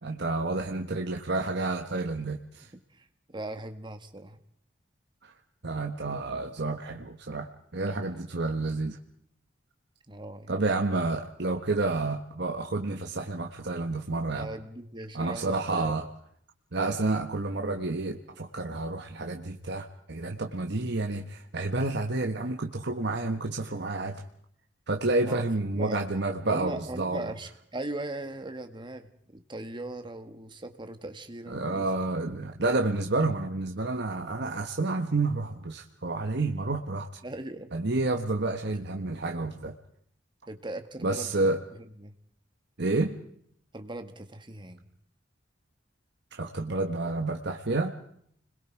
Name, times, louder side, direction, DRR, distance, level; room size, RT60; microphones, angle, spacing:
voice 1, 0.0-2.7 5.2-5.3 5.6-9.0 10.5-14.5 15.1-16.0 16.7-24.2 24.9-27.3 31.5-37.1 37.7-39.7 41.0-41.6 42.8-43.2 46.3-47.9, right 2 dB, 60° right, 3 dB, 1.4 m, -30 dB
voice 2, 2.9-4.4 8.1-8.3 10.1-10.5 14.4-15.9 25.2-25.5 25.7-26.0 26.5-32.0 37.2-37.7 40.5-42.1 43.7-44.9, right 1 dB, 25° right, 8 dB, 1.7 m, -39 dB
30.0 x 21.5 x 4.7 m, 0.68 s
head